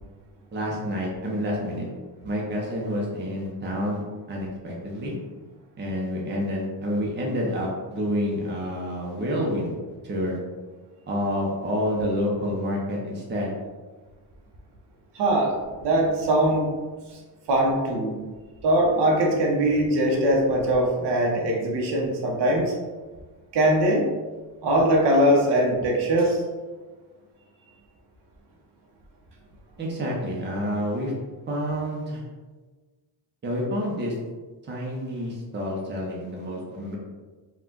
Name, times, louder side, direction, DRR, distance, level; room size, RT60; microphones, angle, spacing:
voice 1, 0.5-1.9 2.2-4.0 4.3-5.2 5.8-9.7 10.0-10.4 11.1-13.5 29.8-31.1 31.5-32.2 33.4-34.1 34.7-37.0, equal, 25° right, -2 dB, 0.7 m, -28 dB
voice 2, 15.1-16.7 17.5-18.2 18.6-22.7 23.5-24.0 24.6-26.4, right 1 dB, 85° right, -1 dB, 1.1 m, -21 dB
4.7 x 2.4 x 3.8 m, 1.3 s
cardioid pair, 175°, 40 cm